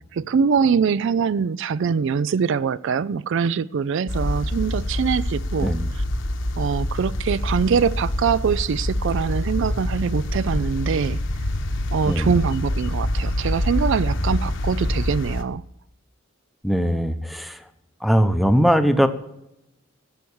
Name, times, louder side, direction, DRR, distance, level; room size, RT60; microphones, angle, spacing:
voice 1, 0.1-6.0 6.6-11.2 11.9-15.6, right 6 dB, 60° right, 0.3 m, -23 dB
sound 1, 4.1-15.4, left 1 dB, 60° left, 1.1 m, -26 dB
voice 2, 16.6-17.6 18.0-19.1, equal, ahead, 0.8 m, -20 dB
14.0 x 7.7 x 7.0 m
head